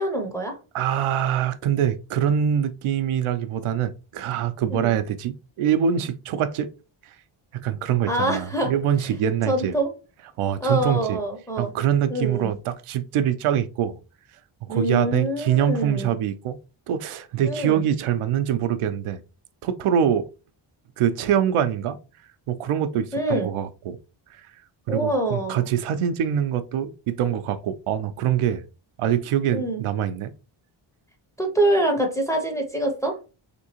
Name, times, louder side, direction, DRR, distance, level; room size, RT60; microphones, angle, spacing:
voice 1, 0.0-0.6 4.7-5.0 8.1-8.7 9.5-9.9 10.6-11.7 12.1-12.5 14.7-16.1 17.4-17.9 23.1-23.5 24.9-25.7 29.5-29.8 31.4-33.2, right 1 dB, 5° left, 0.5 m, -25 dB
voice 2, 0.7-6.7 7.5-9.7 10.4-11.2 11.6-14.0 14.7-16.6 16.9-19.2 19.6-20.3 21.0-22.0 22.5-24.0 24.9-28.7 29.0-30.3, right 9 dB, 90° right, 0.6 m, -24 dB
3.5 x 2.9 x 2.8 m
wide cardioid pair, 170°, 49 cm